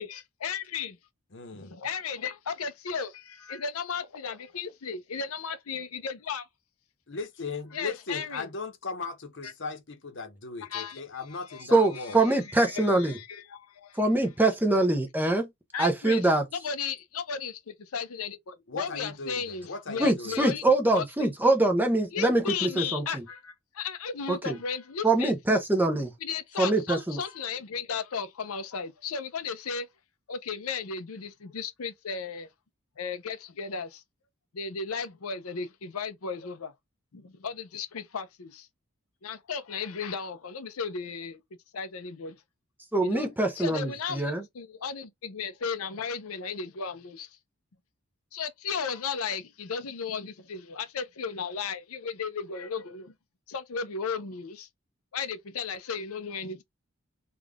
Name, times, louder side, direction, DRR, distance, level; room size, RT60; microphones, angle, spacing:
voice 1, 0.0-1.0 1.5-6.5 7.7-8.5 10.7-11.0 11.5-14.0 15.7-16.3 16.6-20.6 20.9-21.0 22.1-25.3 26.2-29.9 30.3-32.5 33.0-34.0 34.5-36.7 37.1-38.7 39.2-41.4 41.7-42.4 43.0-43.3 43.6-47.3 48.3-53.1 53.5-54.7 55.1-56.6, left 5 dB, 85° left, 0.6 m, -35 dB
voice 2, 1.3-1.7 7.1-12.2 18.7-20.4, left 4 dB, 55° left, 0.9 m, -38 dB
voice 3, 11.7-13.1 14.0-15.5 15.8-16.4 20.0-23.2 24.3-24.6 25.0-26.1 26.6-27.2 42.9-44.4, right 2 dB, 10° right, 0.6 m, -24 dB
3.6 x 2.4 x 3.4 m
head